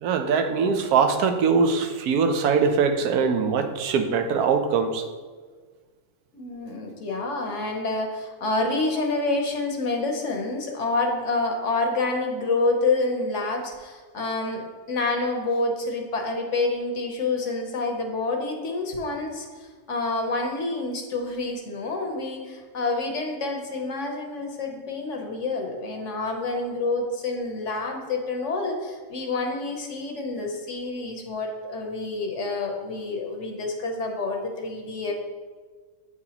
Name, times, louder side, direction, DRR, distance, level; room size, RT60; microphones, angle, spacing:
voice 1, 0.0-5.0, right 5 dB, 90° right, 7 dB, 1.1 m, -22 dB
voice 2, 6.3-35.1, left 3 dB, 60° left, 2 dB, 1.1 m, -28 dB
8.0 x 4.9 x 2.8 m, 1.5 s
omnidirectional pair, 1.6 m